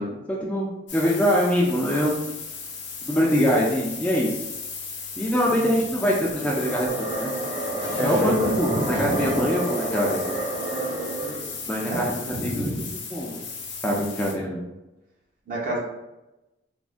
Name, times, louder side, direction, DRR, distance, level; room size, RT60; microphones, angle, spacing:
voice 1, 0.0-2.3 3.0-4.4 5.2-6.9 7.2-7.4 8.0-10.4 11.7-12.7 13.1-13.4 13.8-14.6, equal, 5° left, -4 dB, 0.3 m, -24 dB
sound 1, 0.9-14.3, left 5 dB, 75° left, 0.7 m, -36 dB
sound 2, 6.3-11.6, right 2 dB, 85° right, 1.3 m, -30 dB
voice 2, 7.7-9.4 11.9-12.0 12.2-12.8 15.5-15.8, right 1 dB, 50° right, -3 dB, 0.8 m, -28 dB
Keyboard (musical), 7.8-11.2, right 1 dB, 65° right, 1.4 m, -35 dB
3.4 x 2.1 x 2.4 m, 0.98 s
head